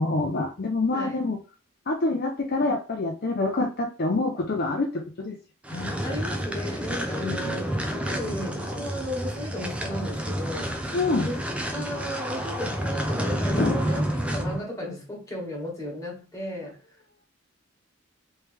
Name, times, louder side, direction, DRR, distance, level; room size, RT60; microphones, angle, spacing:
voice 1, 0.0-1.4 1.9-5.4 5.7-5.9 7.2-7.4 10.9-11.3 13.6-13.8, left 2 dB, 50° left, 0.6 m, -26 dB
voice 2, 0.9-1.2 6.0-7.6 7.9-10.8 11.2-11.4 11.7-14.0 14.3-16.8, equal, 15° left, 1.7 m, -35 dB
sound 1, 5.6-14.6, equal, 5° right, 0.5 m, -29 dB
3.3 x 3.1 x 3.3 m
head